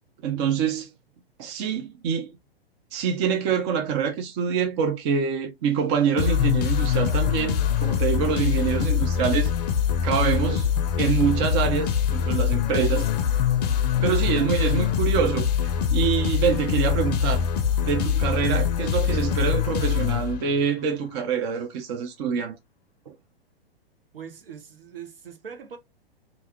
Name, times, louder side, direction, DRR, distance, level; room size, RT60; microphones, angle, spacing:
voice 1, 0.2-0.9 1.4-2.3 2.9-9.5 10.0-13.1 14.0-17.5 17.8-22.6 23.1-23.2, right 7 dB, 30° right, 0.5 m, -25 dB
sound 1, 6.2-20.8, left 8 dB, 40° left, 0.5 m, -24 dB
voice 2, 24.1-25.8, right 7 dB, 65° right, 1.1 m, -41 dB
3.6 x 2.5 x 2.8 m
figure-of-eight pair, 110°, 31 cm